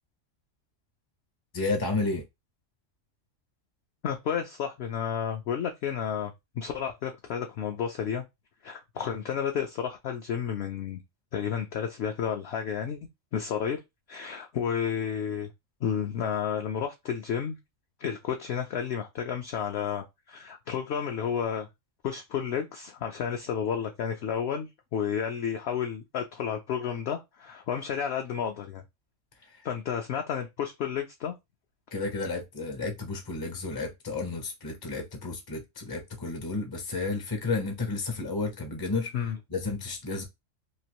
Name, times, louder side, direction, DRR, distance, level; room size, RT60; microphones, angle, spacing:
voice 1, 1.5-2.2 29.5-29.7 31.9-39.1 39.5-40.2, left 3 dB, 30° left, 0.4 m, -32 dB
voice 2, 4.0-8.2 8.6-11.0 11.3-13.0 13.3-13.8 14.1-15.5 15.8-17.6 18.0-21.7 22.0-28.8 29.6-31.4 39.1-39.4, left 8 dB, 65° left, 0.7 m, -31 dB
3.0 x 2.5 x 2.8 m
omnidirectional pair, 1.4 m